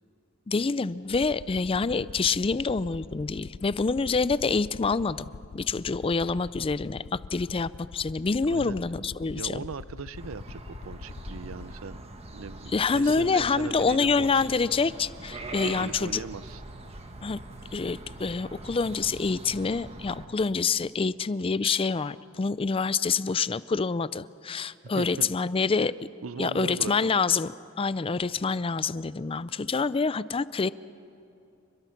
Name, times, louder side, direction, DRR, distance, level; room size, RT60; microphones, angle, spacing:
voice 1, 0.5-9.6 12.7-16.2 17.2-17.4 17.7-25.9 26.4-30.7, left 4 dB, 25° left, 17 dB, 0.4 m, -27 dB
Aircraft, 1.1-11.8, left 5 dB, 90° left, 0.5 m, -44 dB
voice 2, 8.5-8.8 9.3-12.0 12.3-14.5 15.6-16.6 24.9-25.4 26.2-27.2, right 4 dB, 85° right, 16 dB, 0.6 m, -39 dB
sound 1, 10.2-20.3, right 2 dB, 30° right, 1.7 m, -43 dB
29.5 x 21.5 x 5.9 m, 2.7 s
head